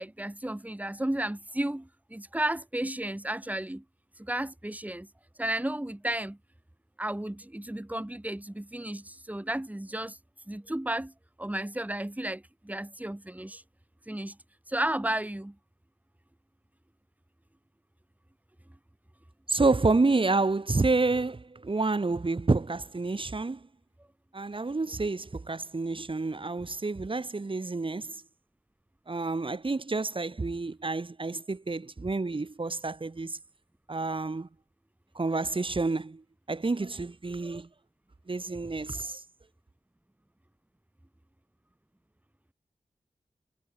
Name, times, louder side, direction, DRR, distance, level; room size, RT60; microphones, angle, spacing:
voice 1, 0.0-3.8 4.2-5.1 5.4-6.4 7.0-10.2 10.5-11.1 11.4-13.6 14.1-14.4 14.7-15.5, right 1 dB, 10° right, 2.7 m, -33 dB
voice 2, 19.5-23.6 24.3-28.2 29.1-33.4 33.9-34.5 35.1-36.2 36.5-37.7 38.3-39.2, right 3 dB, 45° right, 2.8 m, -29 dB
wide cardioid pair, 65°, 13 cm